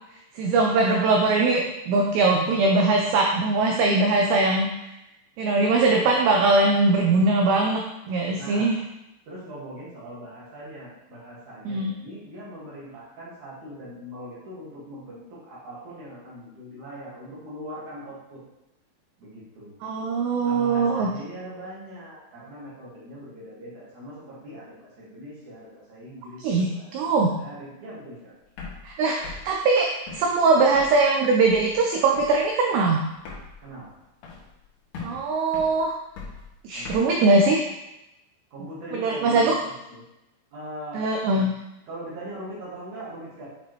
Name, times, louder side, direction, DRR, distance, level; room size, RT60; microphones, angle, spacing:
voice 1, 0.4-4.7 5.4-7.8 8.1-8.8 11.7-11.9 19.8-21.1 26.4-27.3 28.8-33.0 35.0-35.9 36.6-37.6 38.9-39.5 40.9-41.5, right 3 dB, 85° right, 0 dB, 2.5 m, -21 dB
voice 2, 8.4-8.7 9.3-18.4 19.2-19.8 20.4-28.3 33.6-33.9 36.7-37.0 38.5-39.5 39.9-40.0 40.5-41.0 41.9-43.5, equal, 55° right, -7 dB, 2.5 m, -41 dB
sound 1, 28.4-31.1 31.5-31.9 32.2-32.5 32.8-32.9 33.1-34.7 34.9-37.0, left 4 dB, 80° left, 1.8 m, -41 dB
8.2 x 4.9 x 3.1 m, 0.91 s
omnidirectional pair, 5.6 m